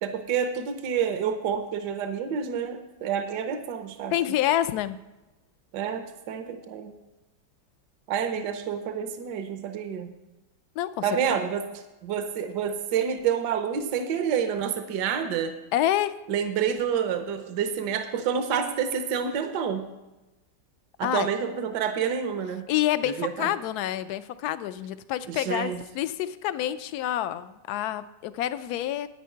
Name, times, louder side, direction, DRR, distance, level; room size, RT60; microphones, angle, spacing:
voice 1, 0.0-4.1 5.7-6.9 8.1-10.1 11.0-11.7 12.0-15.6 16.3-19.9 21.0-22.7 23.1-23.5 25.3-25.8, right 7 dB, 70° right, 8 dB, 1.4 m, -28 dB
voice 2, 4.1-5.0 10.8-11.0 15.7-16.1 21.0-21.3 22.7-29.1, left 12 dB, 70° left, 13 dB, 1.0 m, -27 dB
10.5 x 9.2 x 4.5 m, 1.0 s
omnidirectional pair, 2.0 m